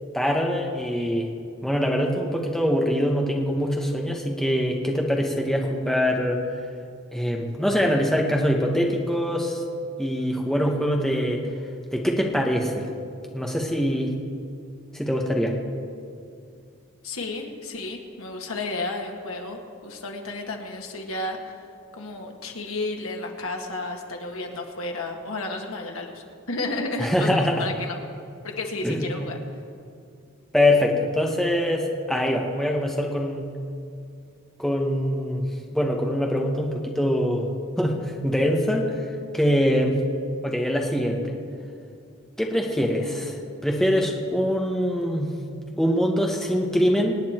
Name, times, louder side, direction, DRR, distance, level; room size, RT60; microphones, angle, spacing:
voice 1, 0.1-1.3 1.6-6.4 7.1-9.6 10.0-11.4 11.9-12.9 13.3-14.1 14.9-15.5 27.0-27.7 28.8-29.1 30.5-33.4 34.6-35.4 35.7-37.5 37.8-39.0 39.3-40.0 40.4-41.3 42.4-43.4 43.6-45.3 45.8-47.2, equal, ahead, 0 dB, 1.5 m, -23 dB
voice 2, 17.0-21.6 21.9-28.0 28.4-29.4, left 2 dB, 80° left, 2 dB, 1.9 m, -32 dB
26.0 x 8.9 x 4.6 m, 2.4 s
head